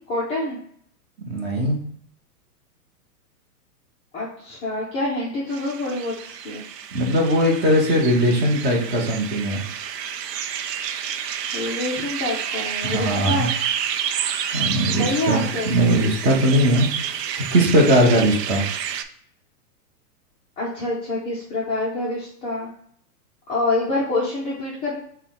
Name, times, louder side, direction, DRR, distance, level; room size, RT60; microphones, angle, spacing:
voice 1, 0.1-0.6 4.1-6.6 11.5-13.5 14.9-15.7 20.6-22.7 23.5-25.0, left 2 dB, 15° left, -7 dB, 0.5 m, -26 dB
voice 2, 1.3-1.8 6.9-9.6 12.8-13.5 14.5-16.9 17.4-18.7, equal, 20° right, -1 dB, 1.0 m, -19 dB
sound 1, 5.5-19.0, right 8 dB, 80° right, 0.6 m, -29 dB
5.6 x 2.3 x 3.7 m, 0.66 s
hypercardioid pair, 125°, 48 cm